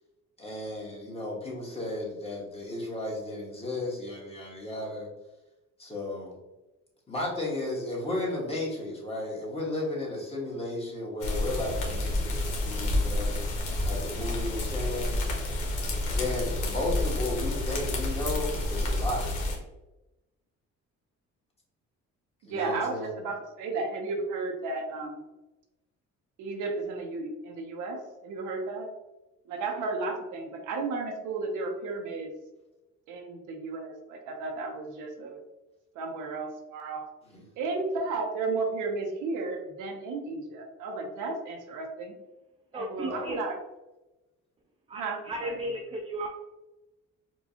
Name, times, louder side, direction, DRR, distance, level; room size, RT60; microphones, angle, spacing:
voice 1, 0.4-5.1 5.8-6.3 7.1-15.2 16.1-19.4 22.5-23.2 37.3-37.5 43.0-43.3, left 2 dB, 20° left, -4 dB, 1.4 m, -34 dB
sound 1, 11.2-19.6, left 1 dB, 80° left, 1.0 m, -29 dB
voice 2, 22.4-25.2 26.4-28.9 29.5-32.3 33.1-35.4 36.0-37.1 37.6-42.1 42.7-43.6 44.9-45.8, right 3 dB, 85° right, 3 dB, 0.7 m, -33 dB
voice 3, 42.7-43.4 44.9-46.3, right 1 dB, 20° right, 1 dB, 0.4 m, -35 dB
4.4 x 2.3 x 2.7 m, 1.0 s
cardioid pair, 90°, 30 cm